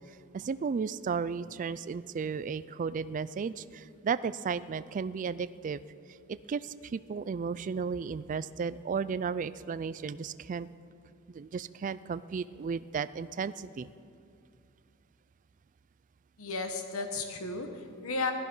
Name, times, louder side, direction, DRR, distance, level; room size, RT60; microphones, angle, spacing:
voice 1, 0.0-5.8 6.3-10.7 11.3-13.9, right 5 dB, 35° right, 15 dB, 0.3 m, -34 dB
voice 2, 16.4-18.3, left 3 dB, 70° left, 5 dB, 1.2 m, -34 dB
17.0 x 13.0 x 5.5 m, 2.5 s
head